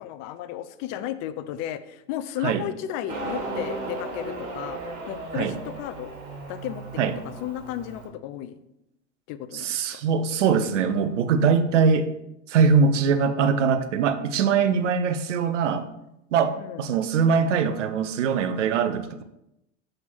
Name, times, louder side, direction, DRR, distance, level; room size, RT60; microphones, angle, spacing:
voice 1, 0.0-4.8 5.1-6.1 6.5-6.8 7.2-8.6 9.3-10.0 16.6-16.9, left 12 dB, 50° left, 12 dB, 0.7 m, -34 dB
Motorcycle, 3.1-8.1, right 2 dB, 60° right, 2.1 m, -35 dB
voice 2, 9.6-12.1 12.5-15.9 16.3-19.2, right 6 dB, 80° right, 11 dB, 0.8 m, -22 dB
5.9 x 3.9 x 6.1 m, 0.86 s
hypercardioid pair, 90°, 36 cm